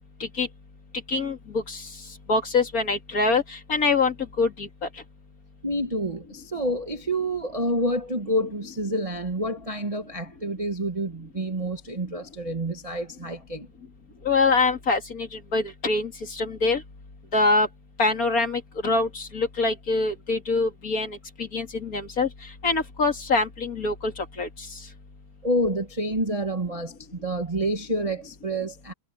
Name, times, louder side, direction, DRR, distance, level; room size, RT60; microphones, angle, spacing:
voice 1, 1.1-1.8 2.3-4.7 14.2-16.8 17.3-17.7 18.0-21.2 21.5-22.3 22.6-24.5, left 3 dB, 40° left, 2.8 m, -24 dB
voice 2, 5.6-13.7 25.4-27.0 27.2-28.9, right 1 dB, 20° right, 1.2 m, -28 dB
omnidirectional pair, 2.3 m